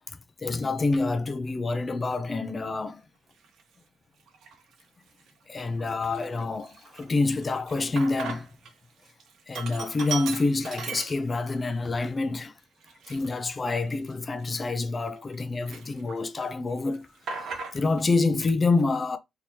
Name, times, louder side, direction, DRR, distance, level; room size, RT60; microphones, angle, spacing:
voice 1, 0.1-3.1 5.5-8.5 9.5-12.6 13.1-17.1 17.4-19.2, left 3 dB, 30° left, 0.4 m, -27 dB
Sink (filling or washing), 3.4-3.6 4.3-4.8 5.2-5.3 5.6-8.7 9.0-11.6 12.0-12.1 12.8-15.4 15.7-16.4 16.7-18.1, right 5 dB, 70° right, 0.8 m, -38 dB
3.3 x 2.8 x 2.9 m
cardioid pair, 90°, 0 cm